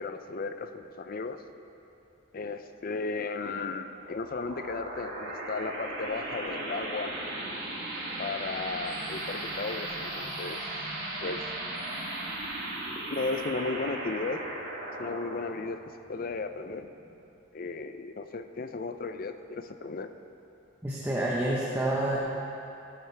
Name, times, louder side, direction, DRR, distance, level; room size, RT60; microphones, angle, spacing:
voice 1, 0.0-1.4 2.3-7.1 8.2-10.7 11.2-11.5 13.1-14.4 15.0-15.8 16.1-16.9 17.5-20.1, left 3 dB, 45° left, 9 dB, 0.5 m, -35 dB
sound 1, 4.0-17.1, right 1 dB, 55° right, 3.0 m, -37 dB
voice 2, 20.8-22.2, right 1 dB, 10° right, -6 dB, 1.1 m, -28 dB
15.0 x 11.5 x 3.4 m, 2.8 s
head